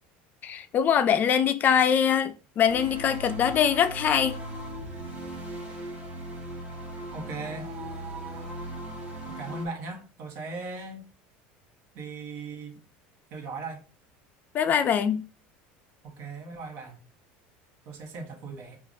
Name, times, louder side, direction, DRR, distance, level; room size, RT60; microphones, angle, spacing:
voice 1, 0.4-4.4 14.5-15.2, left 8 dB, 40° left, 0.3 m, -23 dB
sound 1, 2.7-9.7, right 1 dB, 30° right, 1.2 m, -38 dB
voice 2, 7.1-7.7 9.3-11.1 11.9-12.8 13.3-13.8 16.0-17.0 17.9-18.8, right 3 dB, 60° right, 1.1 m, -38 dB
4.7 x 2.4 x 2.6 m
supercardioid pair, 115°, 5 cm